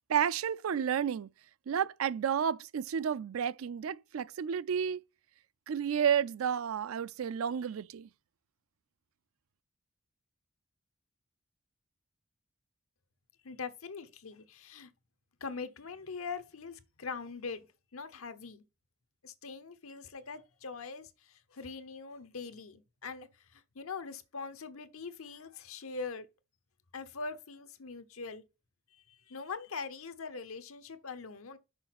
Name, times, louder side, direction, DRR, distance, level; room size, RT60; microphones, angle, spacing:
voice 1, 0.1-1.3 1.7-5.0 5.7-8.1, right 8 dB, 80° right, 0.4 m, -31 dB
voice 2, 13.4-14.9 15.4-17.7 17.9-18.6 19.2-23.3 23.5-26.3 26.9-28.4 28.9-31.6, left 4 dB, 80° left, 0.9 m, -42 dB
6.3 x 4.9 x 5.9 m
head